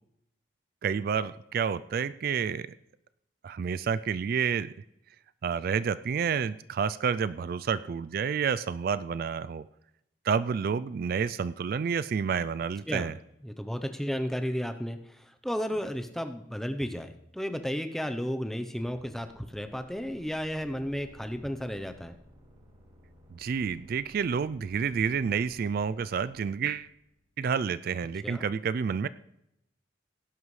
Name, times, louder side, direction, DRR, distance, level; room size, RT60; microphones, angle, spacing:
voice 1, 0.8-2.7 3.4-4.7 5.4-9.7 10.2-13.1 23.3-26.9 27.4-29.1, right 6 dB, 50° right, 16 dB, 0.3 m, -29 dB
voice 2, 13.4-22.1 28.2-28.4, equal, ahead, 7 dB, 0.7 m, -33 dB
sound 1, 18.8-27.3, equal, 35° right, 4.5 m, -56 dB
17.5 x 11.0 x 3.2 m, 0.82 s
head